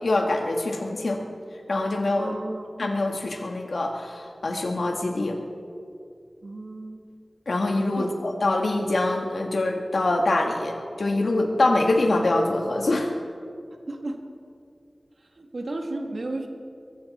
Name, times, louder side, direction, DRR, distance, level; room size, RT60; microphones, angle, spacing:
voice 1, 0.0-1.2 1.7-2.3 2.8-5.3 7.5-13.1, left 2 dB, 90° left, 2 dB, 1.7 m, -24 dB
voice 2, 2.2-2.8 6.4-7.1 8.0-8.1 13.9-14.2 15.4-16.5, right 2 dB, 80° right, 3 dB, 1.7 m, -33 dB
22.5 x 14.5 x 4.3 m, 2.4 s
wide cardioid pair, 55°, 0 cm